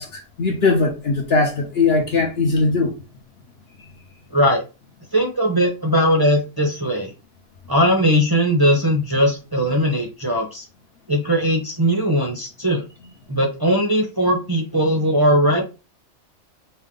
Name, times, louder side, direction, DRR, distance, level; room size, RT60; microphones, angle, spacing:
voice 1, 0.0-3.0, left 3 dB, 55° left, 0.9 m, -20 dB
voice 2, 4.3-4.6 5.1-7.1 7.7-10.6 11.1-12.8 13.3-15.6, equal, 20° right, 0.7 m, -19 dB
4.4 x 2.1 x 3.8 m
omnidirectional pair, 1.4 m